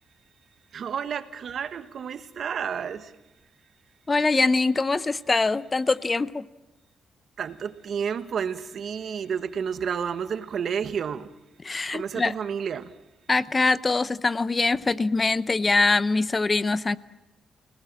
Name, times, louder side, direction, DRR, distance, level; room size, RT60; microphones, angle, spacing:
voice 1, 0.7-3.1 7.4-11.3 11.9-12.9, right 7 dB, 65° right, 1.4 m, -31 dB
voice 2, 4.1-6.4 11.6-12.3 13.3-17.0, left 3 dB, 30° left, 0.7 m, -23 dB
29.5 x 18.0 x 7.6 m
cardioid pair, 75°, 0 cm